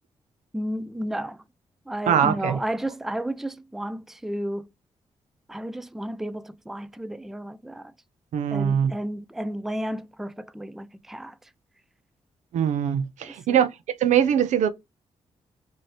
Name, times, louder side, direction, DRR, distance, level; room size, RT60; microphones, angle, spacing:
voice 1, 0.5-1.4 1.9-4.7 5.5-7.9 8.5-11.4 13.2-13.6, right 1 dB, 5° right, 0.3 m, -32 dB
voice 2, 2.1-2.6 8.3-8.9 12.5-13.7 14.0-14.7, right 9 dB, 85° right, 0.5 m, -22 dB
4.7 x 2.7 x 2.9 m
cardioid pair, 75°, 12 cm